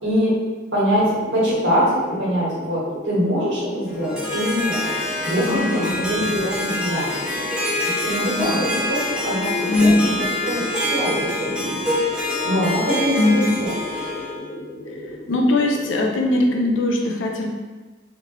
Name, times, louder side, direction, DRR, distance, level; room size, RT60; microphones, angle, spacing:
voice 1, 0.0-0.4 0.7-7.1 7.8-10.1 10.4-12.0 12.4-13.7, equal, 80° right, -7 dB, 1.4 m, -23 dB
sound 1, 0.9-16.8, equal, 35° left, 0.9 m, -35 dB
Harp, 3.9-14.4, left 1 dB, 5° right, 0.4 m, -26 dB
voice 2, 5.5-6.0 8.4-8.6 9.7-10.2 13.2-13.5 15.3-17.5, left 2 dB, 85° left, 1 dB, 0.5 m, -20 dB
3.3 x 2.5 x 3.0 m, 1.2 s
head